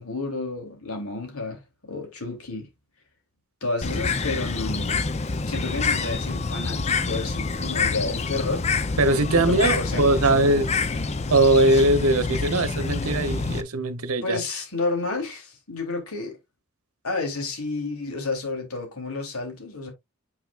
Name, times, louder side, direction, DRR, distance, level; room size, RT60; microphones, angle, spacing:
voice 1, 0.0-2.7 3.6-5.0 5.5-8.7 9.3-10.4 14.2-16.4 17.0-19.9, left 3 dB, 85° left, 3.1 m, -31 dB
Bird, 3.8-13.6, left 4 dB, 30° left, 0.5 m, -27 dB
voice 2, 9.0-10.7 11.3-14.4, right 2 dB, 80° right, 0.9 m, -20 dB
8.1 x 5.8 x 2.4 m
head